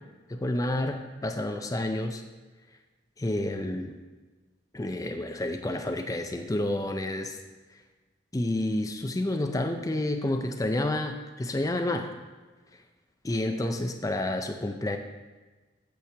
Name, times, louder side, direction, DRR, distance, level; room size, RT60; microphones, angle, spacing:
voice 1, 0.3-2.2 3.2-4.0 4.7-7.4 8.3-12.1 13.2-15.0, left 1 dB, 20° left, 6 dB, 0.4 m, -29 dB
8.5 x 7.3 x 3.4 m, 1.3 s
head